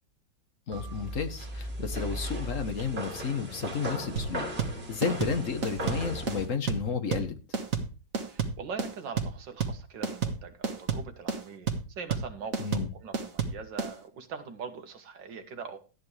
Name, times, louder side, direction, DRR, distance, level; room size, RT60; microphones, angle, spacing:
voice 1, 0.7-4.4 4.7-7.4 12.6-12.9, left 6 dB, 50° left, 1.5 m, -32 dB
sound 1, 0.7-6.5, right 1 dB, 35° right, 2.4 m, -37 dB
sound 2, 4.2-13.9, right 5 dB, 50° right, 2.0 m, -31 dB
voice 2, 8.3-15.8, right 5 dB, 90° right, 2.2 m, -42 dB
13.5 x 9.6 x 3.3 m
omnidirectional pair, 1.9 m